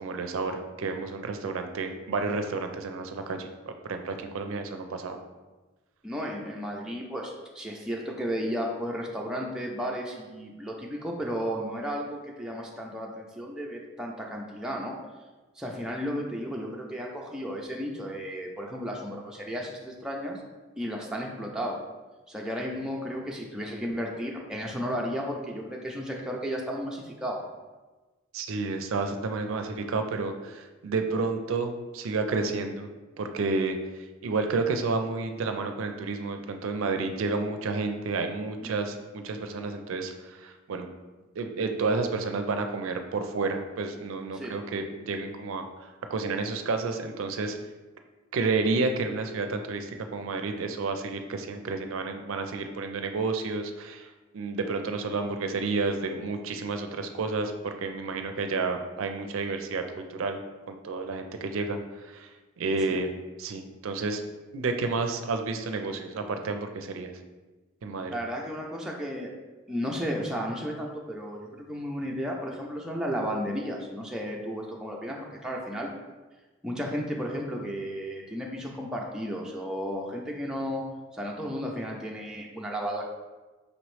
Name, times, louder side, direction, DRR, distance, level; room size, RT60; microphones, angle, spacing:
voice 1, 0.0-5.2 28.3-32.9 33.2-33.8 34.2-40.9 41.4-47.6 48.3-60.4 60.7-62.3 62.6-63.1 63.4-64.2 64.5-67.1 67.8-68.1, right 3 dB, 75° right, 6 dB, 0.4 m, -30 dB
voice 2, 6.0-15.0 15.6-20.4 20.8-21.8 22.3-27.5 38.6-38.8 44.3-44.6 62.9-63.0 68.1-69.3 69.7-75.9 76.6-80.8 81.1-83.0, equal, 5° right, -2 dB, 0.4 m, -33 dB
5.1 x 3.0 x 3.1 m, 1.2 s
head